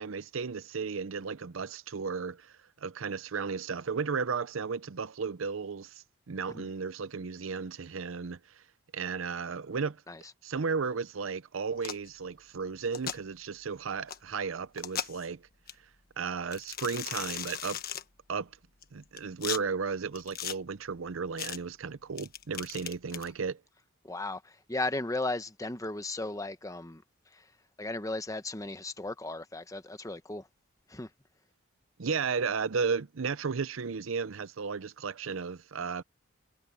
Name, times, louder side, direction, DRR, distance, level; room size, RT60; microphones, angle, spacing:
voice 1, 0.0-2.5 2.8-8.6 8.9-10.0 10.4-15.4 16.2-17.8 18.3-18.5 18.9-23.6 32.0-36.0, right 5 dB, 75° right, 0.6 m, -34 dB
sound 1, 11.8-12.1 12.8-13.2 14.1-14.2 14.8-15.3 15.7-15.8 16.5-18.0 18.8-19.6 20.2-20.6 21.4-21.6 22.2-23.3, left 9 dB, 45° left, 1.4 m, -37 dB
voice 2, 24.0-27.0 27.3-27.4 27.8-30.5 30.9-31.1, left 2 dB, 15° left, 0.9 m, -36 dB
head